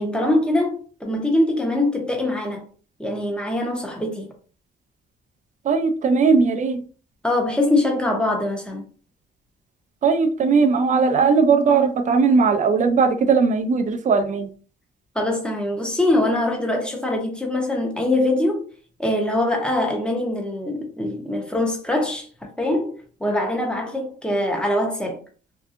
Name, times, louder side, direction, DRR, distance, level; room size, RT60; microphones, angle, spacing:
voice 1, 0.0-2.7 3.0-4.3 7.2-8.8 15.1-18.7 19.0-25.2, left 1 dB, 5° left, 0.9 m, -23 dB
voice 2, 5.6-6.8 10.0-14.5, right 5 dB, 40° right, 0.5 m, -18 dB
2.7 x 2.3 x 2.4 m
cardioid pair, 90°, 20 cm